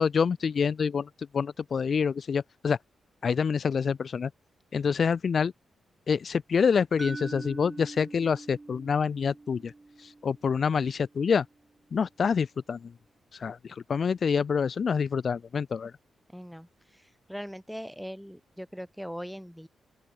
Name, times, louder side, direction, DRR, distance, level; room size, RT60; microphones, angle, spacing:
voice 1, 0.0-2.8 3.2-4.3 4.7-5.5 6.1-9.7 10.0-11.4 11.9-12.8 13.3-15.9, left 6 dB, 55° left, 0.4 m, -27 dB
sound 1, 7.0-11.0, right 3 dB, 25° right, 2.5 m, -44 dB
voice 2, 16.3-19.7, equal, ahead, 3.0 m, -41 dB
open air
cardioid pair, 85°, 0 cm